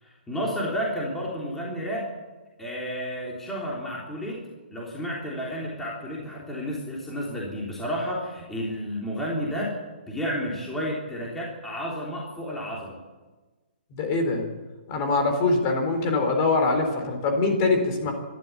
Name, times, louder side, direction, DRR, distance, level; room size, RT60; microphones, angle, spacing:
voice 1, 0.0-2.1 2.6-4.4 4.7-9.8 10.1-13.0, equal, 5° left, -5 dB, 3.4 m, -31 dB
voice 2, 14.0-14.4 14.9-18.1, left 3 dB, 25° left, 4 dB, 3.9 m, -23 dB
25.5 x 12.5 x 8.7 m, 1.3 s
hypercardioid pair, 165°, 6 cm